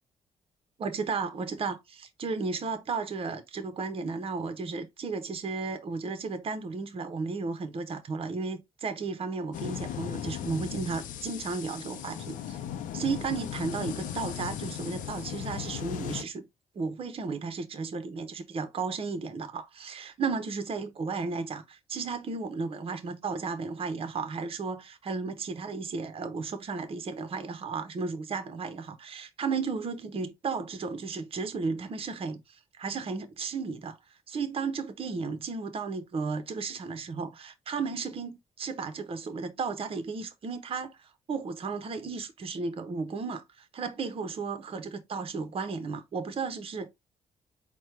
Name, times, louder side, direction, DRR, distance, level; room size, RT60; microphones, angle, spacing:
voice 1, 0.8-12.6 12.9-16.5 16.7-46.9, right 4 dB, 45° right, 0.8 m, -34 dB
sound 1, 9.5-16.2, left 10 dB, 85° left, 0.5 m, -37 dB
4.3 x 2.2 x 4.5 m
cardioid pair, 90°, 13 cm